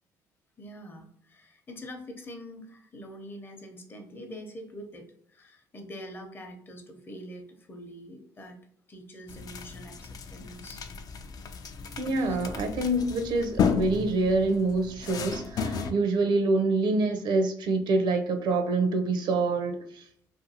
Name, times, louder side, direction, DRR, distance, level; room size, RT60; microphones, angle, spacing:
voice 1, 0.6-5.1 5.3-8.6 8.9-10.8 12.2-12.4 15.9-16.2, equal, 25° left, 4 dB, 0.7 m, -44 dB
sound 1, 9.3-15.9, left 6 dB, 50° left, 0.4 m, -33 dB
voice 2, 12.0-20.0, right 3 dB, 65° right, 7 dB, 0.5 m, -26 dB
2.5 x 2.4 x 2.7 m, 0.66 s
supercardioid pair, 75°, 8 cm